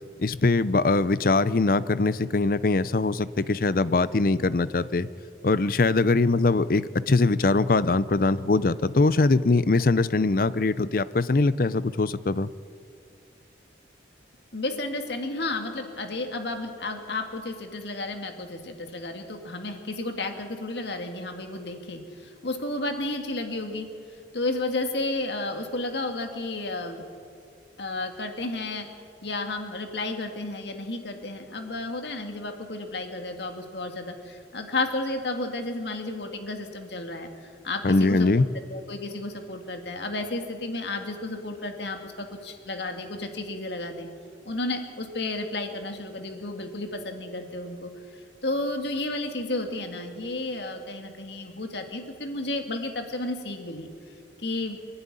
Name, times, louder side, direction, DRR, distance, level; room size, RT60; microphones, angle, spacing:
voice 1, 0.2-5.1 5.4-12.5 37.8-38.5, left 3 dB, 50° left, 16 dB, 0.5 m, -22 dB
voice 2, 14.5-23.9 24.3-27.1 27.8-28.9 29.2-38.3 38.7-44.1 44.4-47.9 48.4-53.9 54.4-54.8, left 2 dB, 70° left, 5 dB, 2.0 m, -32 dB
24.0 x 11.5 x 9.9 m, 2.3 s
head